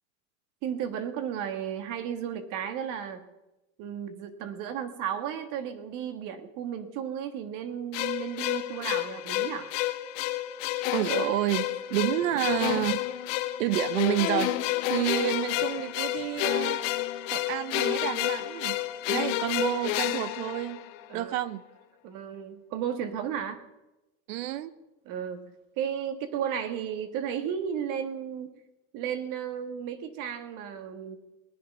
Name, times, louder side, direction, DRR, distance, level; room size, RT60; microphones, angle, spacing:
voice 1, 0.6-3.2 3.8-9.7 21.1-21.3 22.0-23.6 25.1-25.5 25.8-28.6 28.9-31.2, right 8 dB, 50° right, 8 dB, 1.8 m, -34 dB
sound 1, 7.9-21.2, left 15 dB, 65° left, 1.1 m, -30 dB
voice 2, 10.9-13.0 13.6-14.5 14.9-16.8 17.3-18.8 19.1-20.8 21.1-21.6 24.3-24.7, right 14 dB, 80° right, 15 dB, 1.0 m, -29 dB
20.0 x 9.8 x 5.6 m, 0.99 s
supercardioid pair, 135°, 39 cm